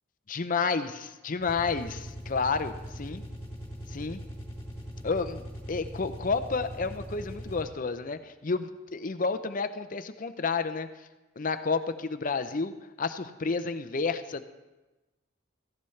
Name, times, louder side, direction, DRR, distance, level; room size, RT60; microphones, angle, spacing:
voice 1, 0.3-3.2 3.9-4.2 5.0-10.9 11.4-12.7 13.0-14.4, left 4 dB, 40° left, 11 dB, 0.6 m, -30 dB
sound 1, 1.4-7.9, equal, 20° left, 3.4 m, -41 dB
17.0 x 15.0 x 3.3 m, 1.1 s
head